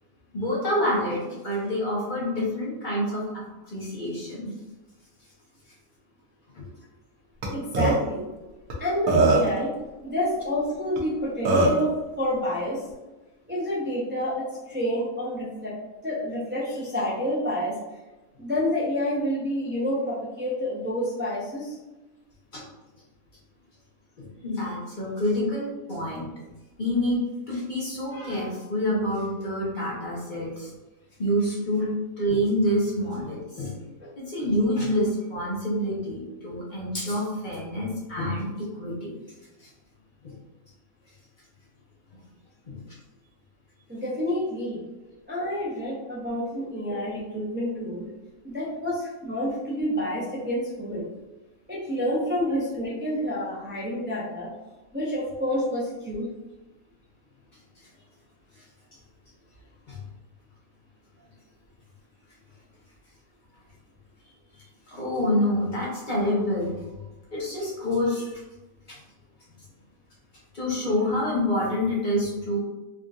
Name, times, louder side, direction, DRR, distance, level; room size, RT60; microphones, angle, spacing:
voice 1, 0.3-3.2 3.6-4.5 6.5-6.6 22.5-22.6 24.4-26.3 26.8-30.7 31.2-31.9 32.2-33.8 34.2-38.5 38.7-39.1 39.6-39.7 40.2-40.4 42.7-42.8 58.6-58.7 59.9-60.0 64.9-66.7 67.3-68.4 68.9-69.0 70.5-72.6, left 1 dB, 40° left, -5 dB, 0.9 m, -27 dB
Burping eructation, 7.4-7.5 7.7-7.9 8.7-8.8 9.1-9.6 11.0-11.1 11.4-11.8, right 2 dB, 85° right, 1.2 m, -20 dB
voice 2, 7.5-8.3 8.8-9.7 10.0-12.8 13.5-15.8 16.0-17.8 18.4-21.8 34.0-34.1 43.9-44.8 45.3-48.1 48.4-51.1 51.7-54.5 54.9-56.3 64.5-64.6, equal, 15° right, -8 dB, 0.3 m, -28 dB
3.6 x 2.6 x 2.3 m, 1.1 s
omnidirectional pair, 1.5 m